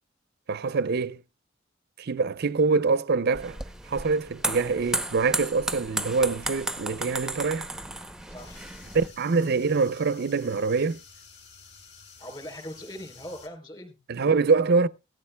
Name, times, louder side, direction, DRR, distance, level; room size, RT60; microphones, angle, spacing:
voice 1, 0.5-1.2 2.0-3.6 3.8-7.7 8.9-11.0 14.1-14.9, right 4 dB, 55° right, 0.5 m, -24 dB
sound 1, 3.3-9.1, right 2 dB, 5° right, 0.7 m, -33 dB
voice 2, 8.3-8.7 12.2-14.0, equal, 20° left, 3.6 m, -41 dB
sound 2, 8.4-13.5, left 5 dB, 60° left, 2.7 m, -51 dB
17.5 x 13.0 x 2.2 m
head